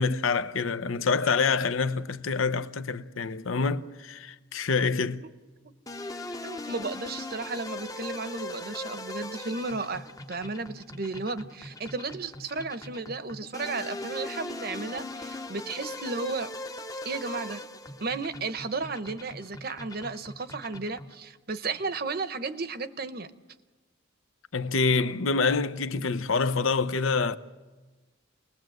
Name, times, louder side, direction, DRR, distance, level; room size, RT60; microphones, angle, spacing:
voice 1, 0.0-5.2 24.5-27.4, left 4 dB, 85° left, 0.8 m, -26 dB
sound 1, 5.9-21.2, left 2 dB, 15° left, 0.7 m, -40 dB
voice 2, 6.4-16.5 17.0-17.6 18.0-23.3, right 3 dB, 50° right, 0.9 m, -34 dB
28.5 x 20.0 x 7.8 m
head